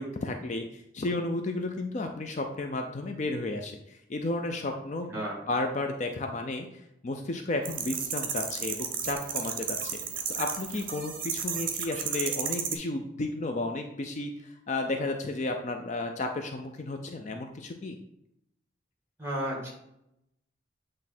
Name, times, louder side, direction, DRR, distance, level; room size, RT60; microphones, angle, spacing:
voice 1, 0.0-10.0 10.3-18.0, left 2 dB, 40° left, 4 dB, 0.5 m, -33 dB
voice 2, 5.1-5.4 19.2-19.7, right 1 dB, 15° right, -1 dB, 1.8 m, -33 dB
sound 1, 7.6-12.7, right 8 dB, 45° right, 0.8 m, -33 dB
8.3 x 3.2 x 4.2 m, 0.80 s
head